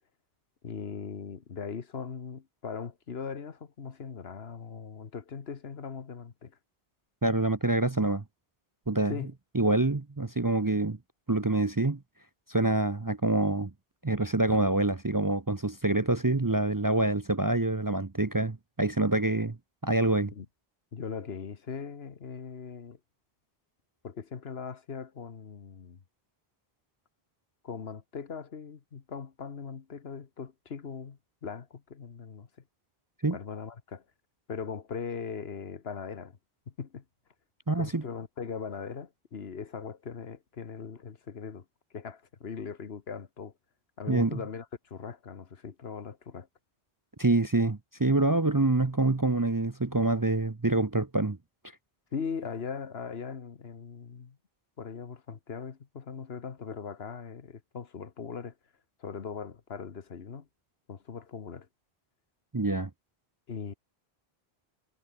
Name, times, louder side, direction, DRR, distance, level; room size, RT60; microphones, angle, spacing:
voice 1, 0.6-6.6 9.1-9.3 20.3-20.5 20.9-23.0 24.0-26.0 27.6-32.5 33.3-34.0 34.5-36.4 36.7-37.0 37.7-41.6 41.9-43.5 44.0-46.5 52.1-54.4 54.8-58.5 59.0-60.5 60.9-61.7 63.5-63.7, left 6 dB, 75° left, 1.5 m, -40 dB
voice 2, 7.2-8.2 8.9-9.1 9.5-11.0 11.3-12.0 12.5-13.7 14.0-19.6 19.8-20.3 33.2-33.4 37.7-38.0 44.1-44.4 47.2-51.4 62.5-62.9, right 2 dB, 20° right, 0.7 m, -26 dB
omnidirectional pair, 1.1 m